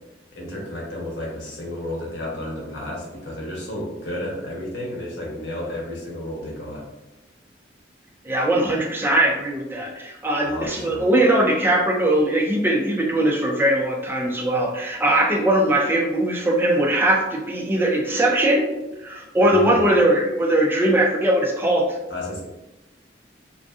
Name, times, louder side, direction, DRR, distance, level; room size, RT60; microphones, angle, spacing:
voice 1, 0.3-6.8 10.5-11.1 19.4-19.8 22.1-22.4, left 1 dB, 90° left, -3 dB, 0.9 m, -32 dB
voice 2, 8.2-18.7 19.0-22.0, right 1 dB, 10° right, 0 dB, 0.3 m, -20 dB
2.5 x 2.4 x 2.3 m, 1.0 s
head